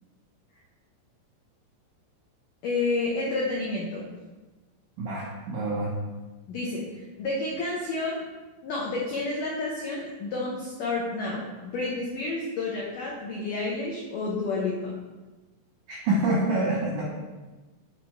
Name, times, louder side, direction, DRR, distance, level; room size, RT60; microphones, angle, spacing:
voice 1, 2.6-4.1 6.5-8.2 8.6-14.9, left 3 dB, 80° left, -4 dB, 1.9 m, -30 dB
voice 2, 5.0-5.9 15.9-17.0, right 2 dB, 75° right, -6 dB, 1.8 m, -26 dB
6.8 x 4.9 x 4.5 m, 1.2 s
omnidirectional pair, 5.3 m